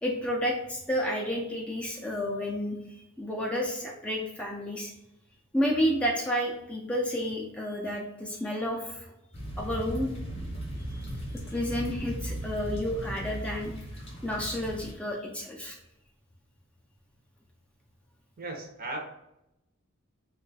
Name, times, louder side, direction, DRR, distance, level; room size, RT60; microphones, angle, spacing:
voice 1, 0.0-4.9 5.5-9.0 9.6-10.1 10.9-11.1 11.5-13.7 14.2-15.8, equal, 5° left, -2 dB, 0.4 m, -31 dB
sound 1, 9.3-14.9, right 1 dB, 30° left, 0.7 m, -37 dB
voice 2, 18.4-19.0, right 2 dB, 45° right, 2 dB, 0.6 m, -36 dB
3.0 x 2.3 x 3.8 m, 0.86 s
head